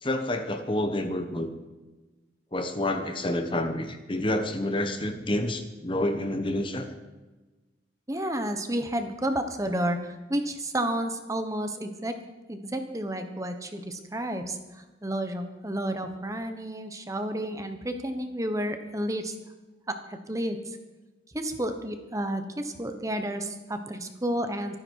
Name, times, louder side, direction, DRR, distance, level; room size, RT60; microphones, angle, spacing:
voice 1, 0.0-1.5 2.5-6.9, left 1 dB, 25° left, 7 dB, 1.1 m, -28 dB
voice 2, 8.1-12.2 12.5-19.4 19.9-20.8 21.3-24.8, right 1 dB, 15° right, 7 dB, 1.1 m, -31 dB
24.5 x 9.9 x 4.7 m, 1.2 s
head